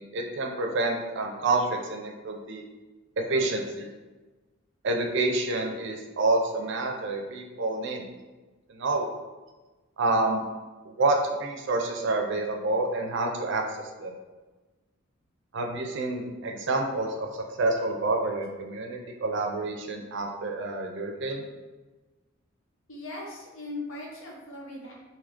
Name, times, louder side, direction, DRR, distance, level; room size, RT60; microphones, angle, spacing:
voice 1, 0.0-2.6 3.2-3.9 4.8-8.1 8.7-9.1 10.0-10.4 10.8-14.1 15.5-17.3 17.6-21.4, right 2 dB, 60° right, 2 dB, 0.5 m, -28 dB
voice 2, 22.9-24.9, left 2 dB, 75° left, -2 dB, 1.0 m, -39 dB
3.6 x 2.8 x 3.5 m, 1.2 s
head